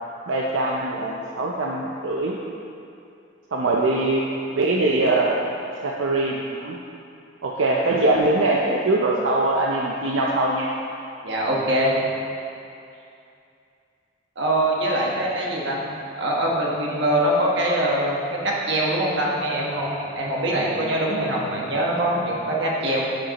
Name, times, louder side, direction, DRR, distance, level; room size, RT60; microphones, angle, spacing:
voice 1, 0.3-2.4 3.5-4.2 4.5-5.4 5.8-6.8 7.4-10.7, right 2 dB, 85° right, -2 dB, 0.6 m, -22 dB
voice 2, 11.2-12.0 14.4-15.8 16.2-23.0, right 1 dB, 65° right, -3 dB, 1.3 m, -23 dB
12.0 x 5.0 x 3.0 m, 2.6 s
head